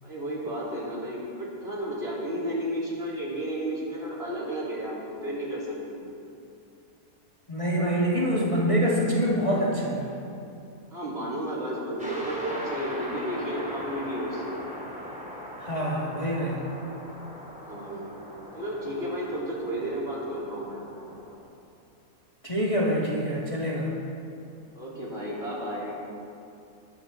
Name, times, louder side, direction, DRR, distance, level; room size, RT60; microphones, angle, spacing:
voice 1, 0.0-6.1 10.9-14.4 17.6-18.1 18.5-20.8 24.7-26.0, right 1 dB, 40° right, -6 dB, 4.4 m, -32 dB
voice 2, 7.5-10.1 15.6-16.6 22.4-23.9, equal, 20° left, -5 dB, 2.1 m, -25 dB
sound 1, 12.0-21.4, equal, 5° right, 2.7 m, -40 dB
21.5 x 14.5 x 4.0 m, 2.6 s
omnidirectional pair, 1.6 m